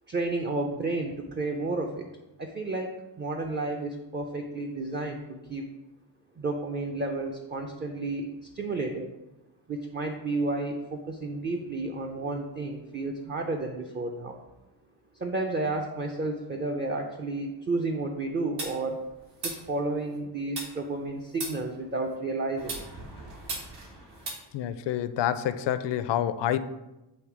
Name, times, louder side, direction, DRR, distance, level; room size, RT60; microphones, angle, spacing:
voice 1, 0.1-2.1 2.4-5.6 6.4-8.3 8.5-9.1 9.7-14.4 15.1-19.0 19.4-22.9, right 2 dB, 25° right, 2 dB, 0.4 m, -31 dB
sound 1, 18.6-20.2 20.6-22.1 22.6-24.3, right 3 dB, 75° right, 1.7 m, -39 dB
voice 2, 24.5-26.6, left 11 dB, 75° left, 12 dB, 0.5 m, -27 dB
7.9 x 3.2 x 4.7 m, 1.0 s
wide cardioid pair, 155°, 42 cm